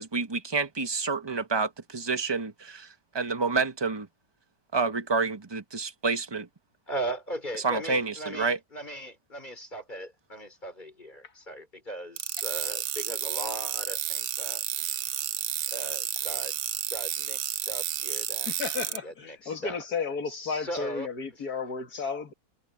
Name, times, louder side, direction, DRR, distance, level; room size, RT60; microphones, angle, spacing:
voice 1, 0.0-4.1 4.7-6.5 7.6-8.6, right 4 dB, 15° right, 1.4 m, -29 dB
voice 2, 6.9-14.6 15.7-16.5 16.9-19.8 20.3-21.1, right 1 dB, 30° left, 4.3 m, -38 dB
sound 1, 12.2-19.0, right 11 dB, 65° right, 1.1 m, -31 dB
voice 3, 18.4-22.3, left 5 dB, 80° left, 2.6 m, -33 dB
omnidirectional pair, 1.6 m